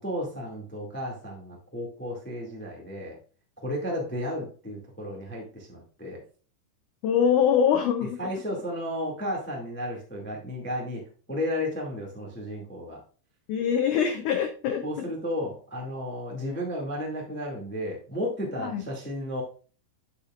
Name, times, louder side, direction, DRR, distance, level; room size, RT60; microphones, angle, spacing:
voice 1, 0.0-3.2 3.6-6.2 8.2-11.0 11.3-13.0 14.8-19.4, equal, 10° left, -1 dB, 0.7 m, -33 dB
voice 2, 7.0-8.2 13.5-14.8 18.6-18.8, left 8 dB, 85° left, 6 dB, 1.7 m, -23 dB
8.5 x 8.3 x 2.5 m, 0.39 s
omnidirectional pair, 4.5 m